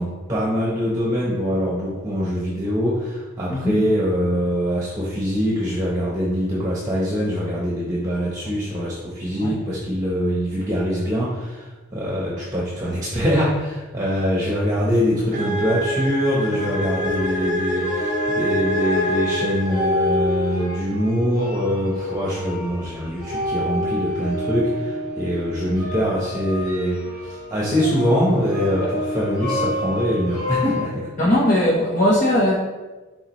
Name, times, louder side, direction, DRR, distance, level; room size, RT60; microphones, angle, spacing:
voice 1, 0.0-31.1, equal, 15° right, -5 dB, 1.1 m, -23 dB
voice 2, 3.5-3.8 9.4-9.5 28.8-29.0 31.2-32.5, left 1 dB, 35° left, -5 dB, 1.1 m, -19 dB
sound 1, 15.3-20.2, equal, 35° right, 0.6 m, -26 dB
sound 2, 16.5-30.8, left 1 dB, 80° left, 2.0 m, -28 dB
11.0 x 3.9 x 3.2 m, 1.2 s
head